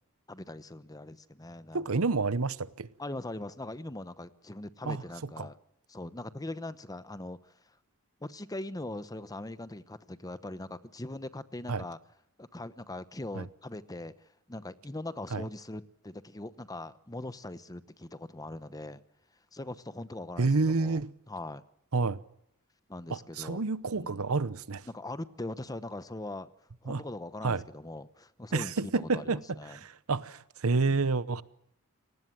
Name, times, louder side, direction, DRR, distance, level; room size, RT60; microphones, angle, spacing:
voice 1, 0.3-2.0 3.0-5.6 5.9-7.5 8.2-12.0 12.4-14.1 14.5-19.0 19.5-21.0 21.3-21.6 22.9-24.3 24.9-26.5 26.8-29.8 30.8-31.1, left 2 dB, 15° left, 0.9 m, -41 dB
voice 2, 1.7-2.9 4.9-5.0 5.4-5.5 11.7-11.8 13.3-13.4 15.3-15.4 20.4-21.1 21.9-22.2 23.1-24.9 26.9-27.0 27.4-27.6 28.5-31.4, right 3 dB, 70° right, 0.9 m, -29 dB
27.0 x 19.0 x 7.6 m
head